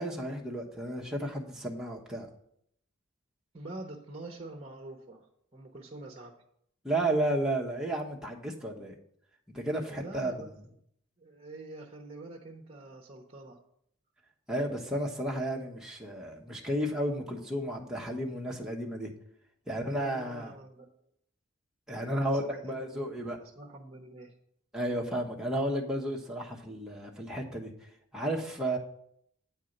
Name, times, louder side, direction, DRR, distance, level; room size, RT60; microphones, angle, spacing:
voice 1, 0.0-2.3 6.8-8.9 9.5-10.5 14.5-19.1 19.7-20.5 21.9-23.4 24.7-27.7 28.1-28.8, right 1 dB, 5° right, -2 dB, 1.1 m, -32 dB
voice 2, 3.5-6.3 9.8-10.5 11.2-13.6 19.7-20.9 22.1-23.2 23.5-24.3, right 2 dB, 30° right, -1 dB, 1.0 m, -46 dB
8.9 x 4.6 x 6.6 m, 0.70 s
head